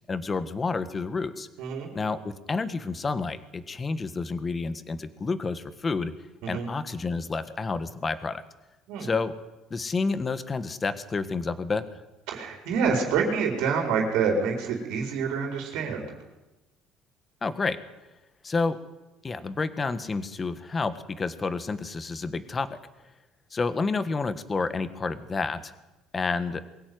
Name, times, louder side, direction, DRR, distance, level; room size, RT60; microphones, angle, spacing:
voice 1, 0.1-1.5 1.9-6.1 6.5-8.4 9.0-9.3 9.7-12.0 17.4-17.8 18.4-18.8 19.2-22.8 23.5-25.7 26.1-26.6, left 4 dB, 20° left, 13 dB, 1.5 m, -29 dB
voice 2, 12.3-16.0, right 5 dB, 75° right, 2 dB, 4.4 m, -27 dB
22.5 x 16.0 x 9.5 m, 1.0 s
cardioid pair, 135°, 0 cm